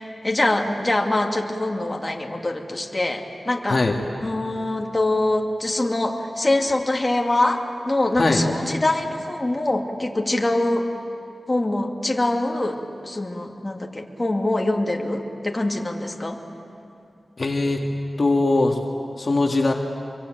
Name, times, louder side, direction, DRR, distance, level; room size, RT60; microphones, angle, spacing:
voice 1, 0.0-3.8 4.2-10.9 11.5-12.8 13.0-16.4, left 2 dB, 25° left, 1 dB, 2.5 m, -24 dB
voice 2, 17.4-17.8 18.2-18.8 19.2-19.7, left 2 dB, 55° left, 1 dB, 2.0 m, -20 dB
26.5 x 23.5 x 9.1 m, 2.6 s
wide cardioid pair, 65°, 0 cm